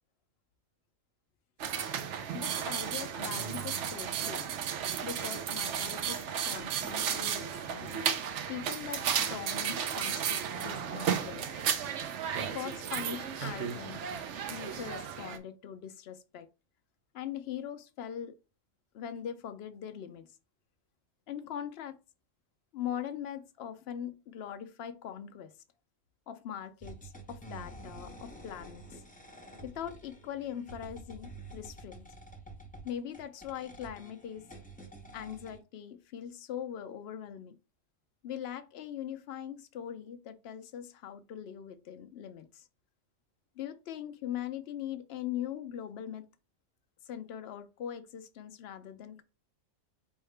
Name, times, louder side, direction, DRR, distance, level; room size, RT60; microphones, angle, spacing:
sound 1, 1.6-15.4, right 8 dB, 70° right, 0.9 m, -34 dB
voice 1, 2.3-4.5 5.0-8.0 8.5-11.5 12.4-14.0 14.5-16.5 17.1-18.4 18.9-20.3 21.3-21.9 22.7-25.5 26.3-29.0 29.6-32.0 32.8-34.5 35.1-37.6 38.2-42.7 43.6-46.3 47.1-49.2, left 9 dB, 60° left, 0.7 m, -41 dB
sound 2, 26.8-35.6, right 1 dB, 10° left, 0.5 m, -49 dB
4.6 x 3.5 x 3.2 m
omnidirectional pair, 1.3 m